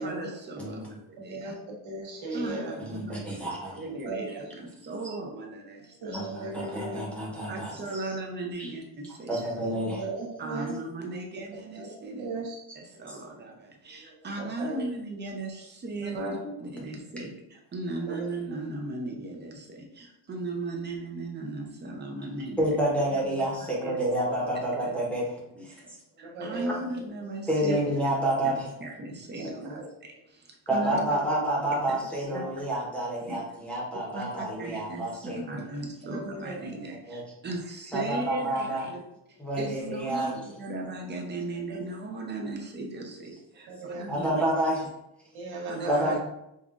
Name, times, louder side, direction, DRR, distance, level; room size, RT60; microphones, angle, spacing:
voice 1, 0.0-1.5 2.3-3.5 3.8-6.2 6.5-6.6 7.5-9.5 10.4-12.4 12.7-22.7 23.8-24.0 24.8-24.9 25.6-25.7 26.2-27.8 28.8-31.0 32.3-32.4 33.2-33.4 33.9-34.2 34.6-35.0 35.3-38.9 39.3-44.4 45.7-45.9, right 2 dB, 25° right, 1 dB, 0.5 m, -37 dB
voice 2, 0.6-0.9 2.8-3.8 6.1-8.1 8.6-8.7 9.3-10.0 12.7-12.8 13.1-13.2 16.4-16.5 22.6-26.0 27.5-28.7 29.3-29.5 30.7-35.6 37.1-37.2 37.9-38.8 39.4-40.3 44.1-44.8 45.9-46.2, right 1 dB, 5° left, -5 dB, 0.8 m, -29 dB
voice 3, 1.8-2.7 4.0-4.4 6.0-7.0 9.6-10.8 11.7-11.9 12.2-12.6 14.4-14.9 16.0-16.4 18.1-18.2 26.2-26.8 29.4-29.9 30.9-31.2 36.0-36.7 41.7-41.8 43.7-44.1 45.3-46.2, right 2 dB, 80° right, -2 dB, 1.2 m, -36 dB
5.4 x 2.3 x 2.4 m, 0.84 s
cardioid pair, 165°, 47 cm